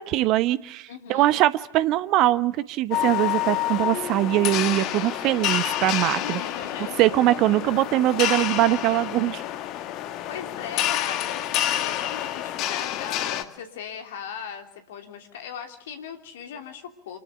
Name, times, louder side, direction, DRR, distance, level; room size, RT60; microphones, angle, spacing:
voice 1, 0.0-6.4 7.0-9.4, right 15 dB, 40° right, 17 dB, 0.9 m, -22 dB
voice 2, 0.9-1.4 6.2-7.0 10.3-17.2, left 7 dB, 55° left, 6 dB, 3.1 m, -38 dB
sound 1, 2.9-13.4, left 12 dB, 40° left, 1.9 m, -28 dB
27.0 x 21.0 x 8.1 m, 0.80 s
figure-of-eight pair, 90°, 0 cm